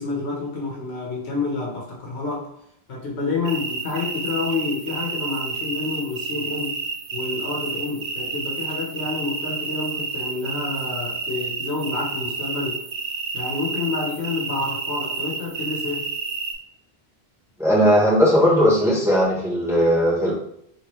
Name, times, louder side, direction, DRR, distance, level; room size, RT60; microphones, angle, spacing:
voice 1, 0.0-2.5 2.9-6.8 7.1-12.8 13.3-16.1, left 3 dB, 80° left, -2 dB, 1.2 m, -28 dB
sound 1, 3.5-16.5, right 4 dB, 70° right, 0.8 m, -30 dB
voice 2, 17.6-20.3, equal, 5° right, -5 dB, 1.0 m, -18 dB
3.2 x 3.0 x 3.0 m, 0.71 s
omnidirectional pair, 1.1 m